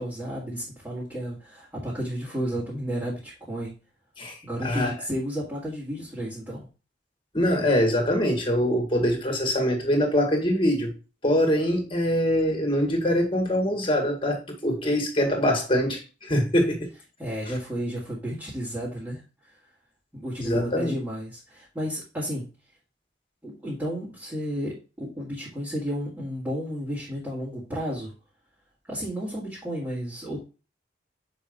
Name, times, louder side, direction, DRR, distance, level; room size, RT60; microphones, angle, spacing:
voice 1, 0.0-3.7 4.4-6.7 17.2-19.5 20.1-22.5 23.4-28.1 28.9-30.4, equal, 10° right, 2.0 m, -32 dB
voice 2, 4.2-4.9 7.3-10.9 11.2-16.9 20.4-20.9, equal, 30° left, 1.9 m, -24 dB
7.1 x 5.4 x 2.5 m
head